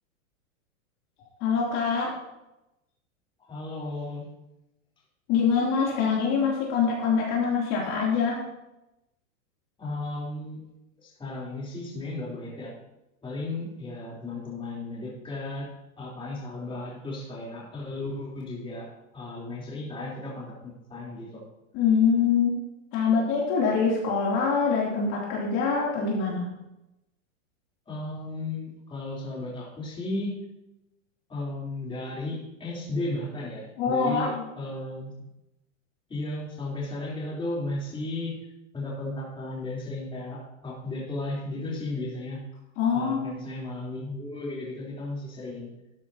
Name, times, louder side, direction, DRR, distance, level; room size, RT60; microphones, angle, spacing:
voice 1, 1.4-2.1 5.3-8.4 21.7-22.6 22.9-26.5 33.8-34.4 42.8-43.4, left 5 dB, 45° left, -4 dB, 3.1 m, -24 dB
voice 2, 3.5-4.2 9.8-10.6 11.0-12.7 13.2-15.7 16.0-21.4 27.9-30.4 31.3-35.1 36.1-38.3 38.7-42.4 42.9-45.7, left 2 dB, 15° left, -5 dB, 3.7 m, -35 dB
12.5 x 10.0 x 2.9 m, 0.94 s
supercardioid pair, 135°, 39 cm